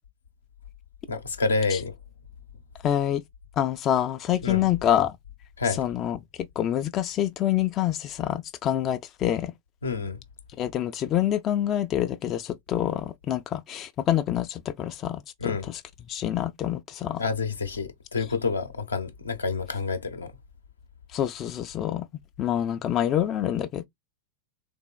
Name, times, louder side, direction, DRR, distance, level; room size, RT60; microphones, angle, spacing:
voice 1, 1.1-1.9 4.4-4.7 5.6-5.8 9.8-10.2 15.4-15.7 17.2-20.3, left 4 dB, 75° left, 0.7 m, -28 dB
voice 2, 2.8-3.2 3.6-5.2 5.8-9.5 10.6-15.8 16.1-17.2 21.1-22.1 22.4-23.8, left 11 dB, 30° left, 0.4 m, -26 dB
3.5 x 3.3 x 2.2 m
figure-of-eight pair, 90°, 0 cm